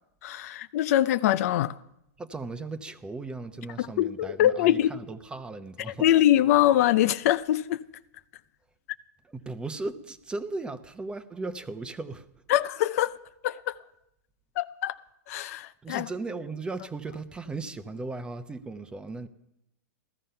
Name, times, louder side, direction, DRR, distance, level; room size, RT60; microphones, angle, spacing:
voice 1, 0.2-1.7 3.8-4.9 5.9-7.8 12.5-13.1 13.4-13.8 14.6-15.0 15.3-16.1, left 13 dB, 60° left, 0.6 m, -23 dB
voice 2, 2.2-6.1 9.3-12.3 15.8-19.3, right 3 dB, 10° right, 0.8 m, -37 dB
15.5 x 13.5 x 5.7 m
supercardioid pair, 140°, 9 cm